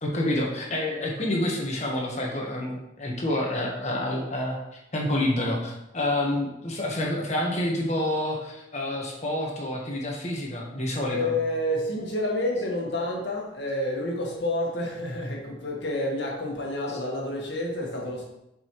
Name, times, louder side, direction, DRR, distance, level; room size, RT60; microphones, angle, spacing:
voice 1, 0.0-4.6 4.9-11.3, left 1 dB, 40° left, -1 dB, 1.4 m, -28 dB
voice 2, 11.1-18.2, left 1 dB, 75° left, -1 dB, 1.7 m, -29 dB
7.4 x 5.4 x 3.2 m, 0.86 s
head